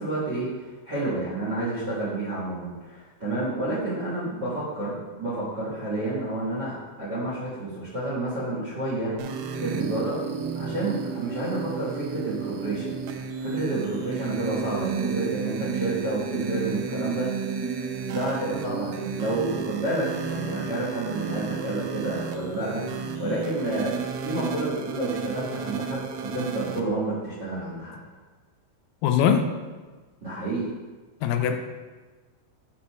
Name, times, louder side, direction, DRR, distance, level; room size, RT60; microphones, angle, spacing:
voice 1, 0.0-10.2 10.5-17.3 17.7-23.9 24.2-28.0 30.2-30.7, right 2 dB, 45° right, -9 dB, 1.4 m, -30 dB
sound 1, 9.2-26.8, right 5 dB, 85° right, 2.5 m, -32 dB
voice 2, 29.0-29.4 31.2-31.6, left 8 dB, 80° left, 5 dB, 2.4 m, -21 dB
7.6 x 4.3 x 5.6 m, 1.3 s
omnidirectional pair, 4.5 m